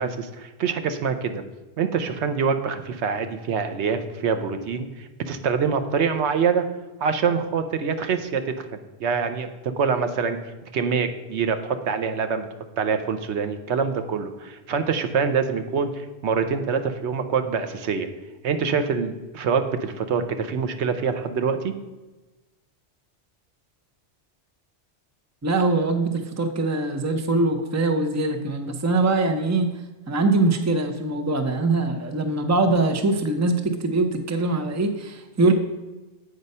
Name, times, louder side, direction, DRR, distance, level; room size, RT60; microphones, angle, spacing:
voice 1, 0.0-1.4 1.8-6.6 7.0-10.4 10.7-12.5 12.8-18.1 18.4-21.7, right 6 dB, 85° right, 8 dB, 1.0 m, -25 dB
voice 2, 25.4-29.7 30.1-35.5, right 3 dB, 20° right, 7 dB, 0.5 m, -22 dB
8.0 x 5.2 x 5.4 m, 1.1 s
omnidirectional pair, 1.1 m